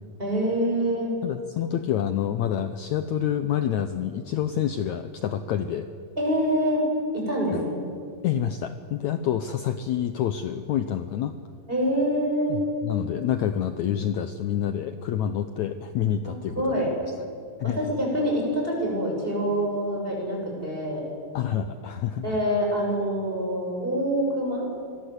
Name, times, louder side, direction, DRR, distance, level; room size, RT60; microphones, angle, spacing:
voice 1, 0.2-1.1 6.2-6.8 7.1-7.8 11.7-12.6 16.2-16.9 17.6-21.0 22.2-24.6, equal, 15° right, -1 dB, 6.8 m, -26 dB
voice 2, 1.2-5.9 7.5-7.6 8.2-11.3 12.5-16.9 17.6-17.8 21.3-22.4, left 10 dB, 75° left, 10 dB, 1.7 m, -27 dB
27.0 x 21.5 x 8.2 m, 2.3 s
omnidirectional pair, 4.3 m